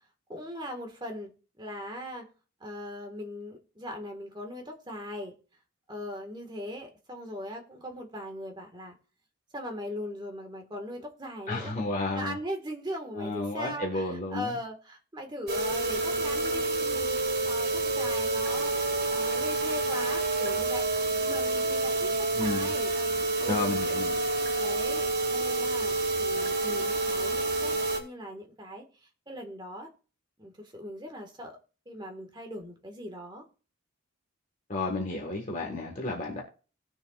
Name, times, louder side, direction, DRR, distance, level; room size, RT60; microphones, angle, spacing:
voice 1, 0.3-1.3 1.6-2.3 2.6-5.3 5.9-9.0 9.5-11.7 12.1-18.7 19.1-20.9 21.2-22.9 23.4-23.7 24.6-29.9 30.4-31.6 31.8-33.4 35.1-35.2, equal, 20° right, 3 dB, 1.7 m, -39 dB
voice 2, 11.5-12.4 13.1-14.5 22.3-22.7 23.5-24.1 34.7-36.4, left 2 dB, 35° left, -1 dB, 1.6 m, -32 dB
sound 1, 15.5-28.0, right 2 dB, 45° right, 2.3 m, -28 dB
19.0 x 6.7 x 2.5 m, 0.37 s
head